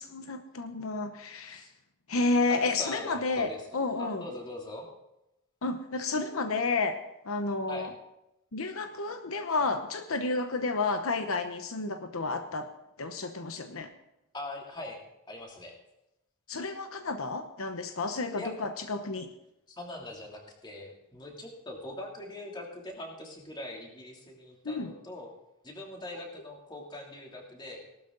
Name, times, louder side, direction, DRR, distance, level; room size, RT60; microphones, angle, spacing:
voice 1, 0.0-1.6 2.1-4.2 5.6-7.0 7.3-7.9 8.5-12.7 13.0-13.9 16.5-19.3 24.6-24.9, left 3 dB, 75° left, 7 dB, 0.9 m, -31 dB
voice 2, 2.5-3.6 4.0-4.9 7.7-7.9 14.3-15.0 15.3-15.8 18.3-18.5 19.7-25.3 25.6-27.8, left 1 dB, 20° left, -1 dB, 2.9 m, -42 dB
18.5 x 12.5 x 3.9 m, 0.87 s
head